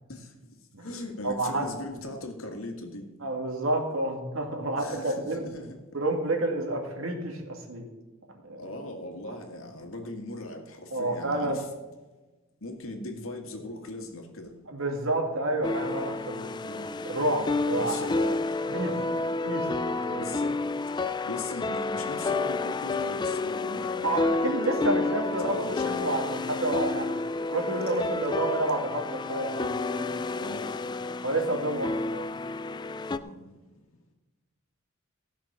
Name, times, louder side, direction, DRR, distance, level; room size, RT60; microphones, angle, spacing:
voice 1, 0.1-0.5 0.8-3.1 4.8-5.8 8.6-11.7 12.6-14.5 16.6-17.0 17.7-19.2 20.2-20.6 21.2-24.3 25.2-26.2 28.0-28.1 30.4-30.7 33.1-33.4, left 2 dB, 85° left, 1.9 m, -39 dB
voice 2, 1.2-1.7 3.2-5.4 5.9-7.8 8.4-8.6 9.3-9.4 10.9-11.6 14.7-16.5 17.0-18.0 18.7-18.9 19.4-20.3 24.0-27.2 27.5-30.1 30.3-30.4 31.2-32.2, right 2 dB, 80° right, 2.2 m, -29 dB
sound 1, 15.6-33.2, left 3 dB, 20° left, 0.3 m, -30 dB
16.5 x 6.0 x 5.9 m
head